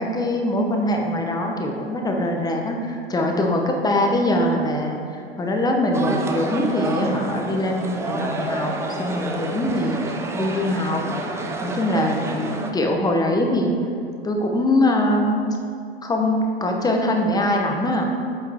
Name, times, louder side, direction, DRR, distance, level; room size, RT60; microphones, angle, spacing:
voice 1, 0.0-5.0 5.4-8.7 9.0-10.0 10.3-11.0 11.6-13.7 14.2-15.4 16.0-18.0, left 1 dB, 10° left, 1 dB, 0.8 m, -22 dB
sound 1, 5.9-12.7, right 2 dB, 10° right, 0.3 m, -29 dB
8.5 x 4.3 x 3.5 m, 2.5 s
hypercardioid pair, 105°, 32 cm